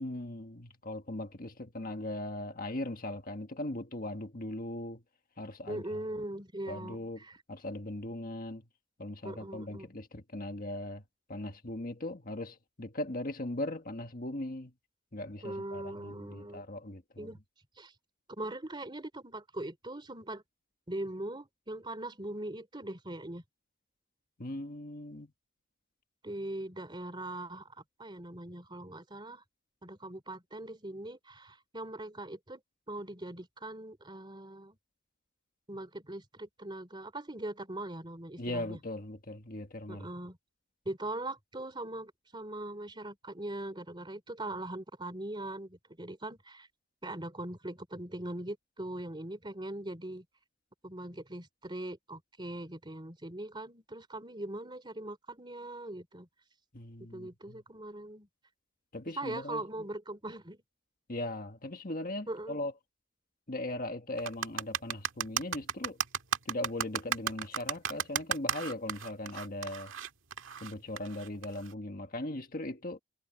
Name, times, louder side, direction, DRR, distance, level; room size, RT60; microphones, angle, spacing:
voice 1, 0.0-5.0 5.4-5.8 6.7-7.2 7.5-8.6 9.0-11.0 11.3-14.7 15.1-17.3 24.4-25.3 38.4-40.1 56.7-57.6 58.9-59.6 61.1-62.7 63.5-66.0 66.4-69.9 70.6-73.0, left 1 dB, 45° left, 1.6 m, -39 dB
voice 2, 5.7-7.4 9.2-9.9 15.4-16.6 17.2-17.4 17.8-17.9 18.3-20.4 20.9-23.4 26.2-29.4 29.8-32.6 32.9-34.8 35.7-38.8 39.9-40.4 40.8-46.7 47.0-50.2 50.8-56.3 57.1-58.3 59.2-60.6 62.3-62.6, right 1 dB, 25° right, 3.1 m, -41 dB
sound 1, 64.2-71.7, right 8 dB, 75° right, 1.8 m, -34 dB
head